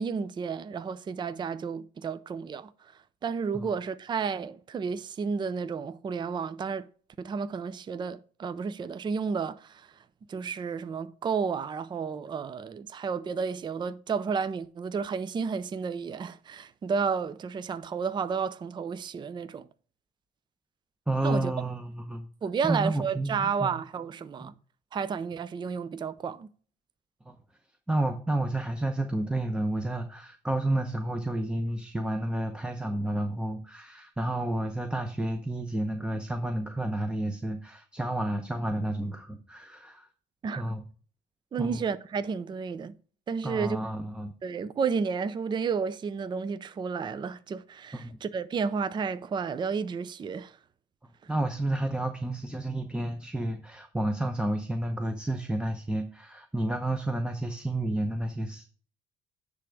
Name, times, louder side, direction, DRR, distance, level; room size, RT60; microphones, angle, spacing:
voice 1, 0.0-2.9 3.2-6.9 7.2-19.7 21.2-21.5 22.4-24.5 24.9-26.5 40.4-40.6 41.5-42.9 43.3-43.8 44.4-50.6, right 5 dB, 25° right, 0.4 m, -32 dB
voice 2, 21.1-22.3 22.6-23.7 24.4-24.5 27.2-27.4 27.9-40.1 40.6-40.8 41.6-41.8 43.4-44.3 47.9-48.2 51.3-58.7, right 1 dB, 5° right, 0.8 m, -31 dB
10.0 x 3.5 x 5.1 m
cardioid pair, 110°, 17 cm